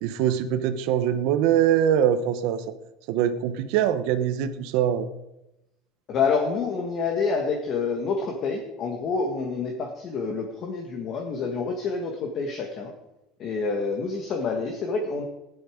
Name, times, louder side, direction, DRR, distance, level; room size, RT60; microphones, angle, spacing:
voice 1, 0.0-2.6 3.1-5.1, right 10 dB, 55° right, 11 dB, 0.9 m, -23 dB
voice 2, 6.1-12.9 13.4-15.3, left 4 dB, 30° left, 2 dB, 1.5 m, -27 dB
16.5 x 11.0 x 5.0 m, 0.94 s
cardioid pair, 175°, 0 cm